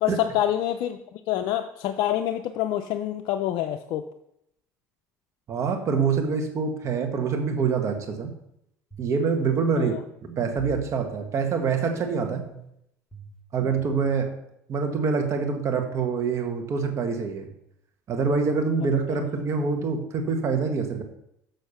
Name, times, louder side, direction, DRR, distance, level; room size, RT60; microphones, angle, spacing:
voice 1, 0.0-4.0 9.8-10.0, left 12 dB, 70° left, 7 dB, 0.5 m, -27 dB
voice 2, 5.5-8.3 9.0-9.9 10.4-12.4 13.5-14.3 14.7-17.5 18.1-21.0, right 5 dB, 50° right, 5 dB, 1.5 m, -25 dB
sound 1, 8.9-9.2 9.6-9.7 10.2-11.0 11.9-12.7 13.1-14.1, equal, 5° left, 2.3 m, -43 dB
6.7 x 6.4 x 5.6 m, 0.79 s
supercardioid pair, 90°, 7 cm